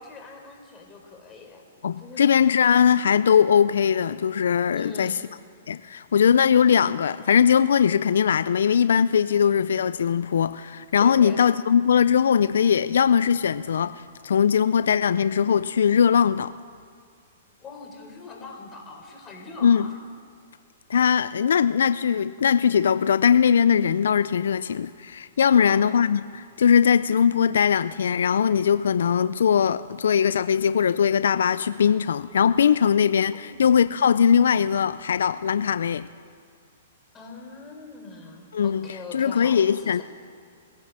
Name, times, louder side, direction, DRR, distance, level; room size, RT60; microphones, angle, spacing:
voice 1, 0.0-1.6 2.0-2.3 4.7-5.2 11.0-11.4 17.6-20.0 25.4-25.9 33.3-33.8 37.1-40.0, left 4 dB, 20° left, 4.6 m, -42 dB
voice 2, 1.8-5.2 5.7-16.5 19.6-19.9 20.9-36.1 38.5-38.9 39.1-40.0, left 7 dB, 75° left, 0.4 m, -20 dB
22.0 x 16.0 x 7.5 m
hypercardioid pair, 120°, 0 cm